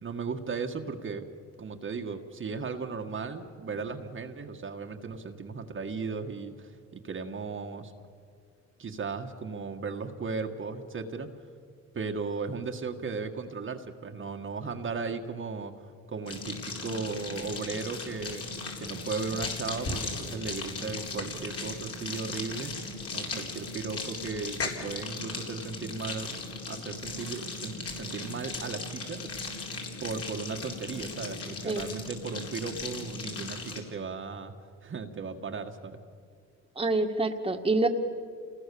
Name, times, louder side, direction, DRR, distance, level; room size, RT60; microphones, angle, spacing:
voice 1, 0.0-1.2 1.6-7.9 8.8-11.3 11.9-18.4 18.8-22.7 23.1-26.3 26.7-29.2 30.0-34.5 34.8-36.0, right 4 dB, 40° right, 4 dB, 1.6 m, -36 dB
sound 1, 16.3-33.8, left 3 dB, 50° left, 4.6 m, -37 dB
voice 2, 36.7-37.9, right 2 dB, 20° right, 4 dB, 1.8 m, -26 dB
28.5 x 19.5 x 7.0 m, 2.1 s
cardioid pair, 90°, 30 cm